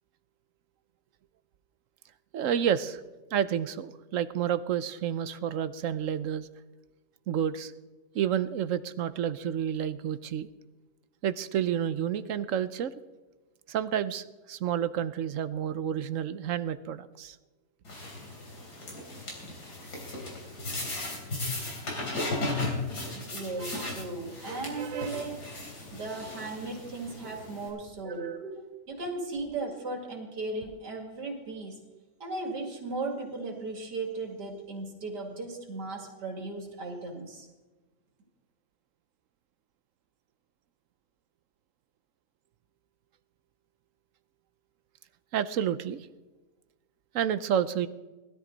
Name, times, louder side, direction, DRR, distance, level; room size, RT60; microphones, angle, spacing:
voice 1, 2.3-3.0 3.3-6.5 7.3-7.7 8.1-10.5 11.2-12.9 13.7-17.4 23.6-23.9 24.8-25.2 45.3-46.1 47.1-47.9, right 9 dB, 65° right, 14 dB, 0.9 m, -30 dB
sound 1, 17.8-27.7, left 2 dB, 75° left, 4.1 m, -36 dB
voice 2, 23.1-25.5 25.9-31.8 32.2-37.5, right 3 dB, 80° right, 2 dB, 2.9 m, -36 dB
18.5 x 13.0 x 4.0 m, 1.2 s
omnidirectional pair, 1.8 m